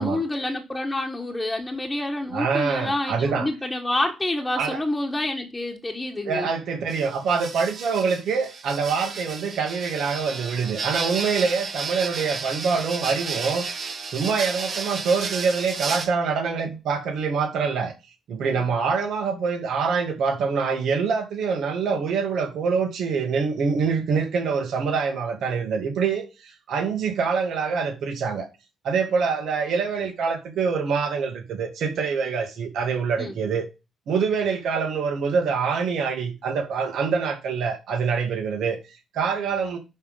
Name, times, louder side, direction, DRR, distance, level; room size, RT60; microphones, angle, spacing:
voice 1, 0.0-6.5 18.5-18.7 33.2-33.4, left 1 dB, 15° left, 1.4 m, -28 dB
voice 2, 2.3-3.5 4.6-4.8 6.3-17.9 18.3-28.5 28.8-33.7 34.1-39.8, right 5 dB, 70° right, 2.0 m, -25 dB
sound 1, 6.9-16.1, right 4 dB, 55° right, 2.1 m, -32 dB
10.5 x 3.6 x 5.5 m
cardioid pair, 90°, 0 cm